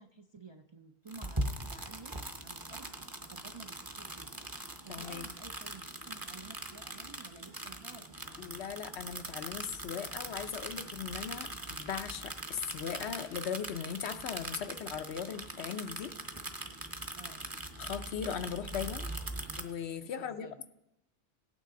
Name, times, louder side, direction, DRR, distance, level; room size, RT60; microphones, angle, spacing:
voice 1, 0.0-2.1 2.4-2.9 3.2-4.4 4.8-8.6 17.2-17.4 20.2-20.6, right 3 dB, 40° right, 5 dB, 0.4 m, -52 dB
sound 1, 1.1-19.6, right 1 dB, 20° right, 0.8 m, -41 dB
voice 2, 4.9-5.3 8.4-16.1 17.8-19.1 19.6-20.7, left 8 dB, 85° left, 10 dB, 1.0 m, -39 dB
17.5 x 9.1 x 3.7 m, 0.87 s
omnidirectional pair, 1.1 m